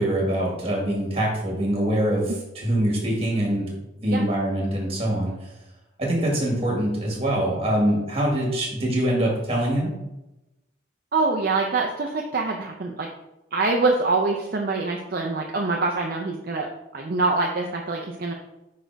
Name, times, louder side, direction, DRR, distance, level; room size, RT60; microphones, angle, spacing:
voice 1, 0.0-3.7 4.0-5.5 6.0-9.9, right 1 dB, 30° right, -2 dB, 1.9 m, -24 dB
voice 2, 11.1-13.1 13.5-18.3, right 3 dB, 50° right, 1 dB, 0.5 m, -25 dB
5.2 x 4.2 x 4.5 m, 0.94 s
head